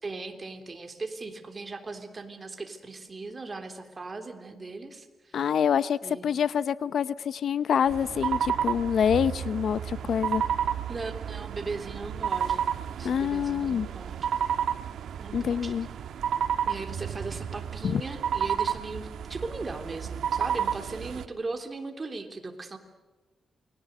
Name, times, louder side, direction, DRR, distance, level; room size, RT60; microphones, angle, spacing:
voice 1, 0.0-5.4 6.0-6.3 10.9-12.7 13.0-14.2 15.2-15.7 16.7-22.8, right 3 dB, 30° right, 5 dB, 3.3 m, -38 dB
voice 2, 5.3-10.4 13.0-13.9 15.3-15.9 17.8-18.0, left 8 dB, 70° left, 16 dB, 0.7 m, -26 dB
sound 1, 7.9-21.3, right 8 dB, 90° right, 1.3 m, -31 dB
28.5 x 22.0 x 8.0 m, 1.2 s
cardioid pair, 100°, 0 cm